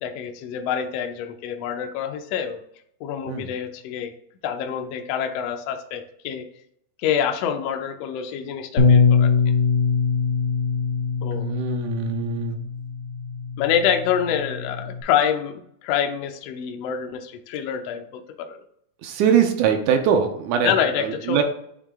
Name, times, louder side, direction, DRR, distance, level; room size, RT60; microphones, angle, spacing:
voice 1, 0.0-2.6 3.0-4.1 4.4-6.5 7.0-9.4 11.2-11.5 13.6-18.6 20.6-21.4, left 8 dB, 80° left, 5 dB, 1.4 m, -26 dB
Bass guitar, 8.8-15.0, left 5 dB, 55° left, 0.8 m, -22 dB
voice 2, 11.4-12.6 19.0-20.7 21.3-21.4, right 7 dB, 80° right, 5 dB, 2.1 m, -22 dB
9.0 x 3.2 x 3.5 m, 0.71 s
omnidirectional pair, 3.6 m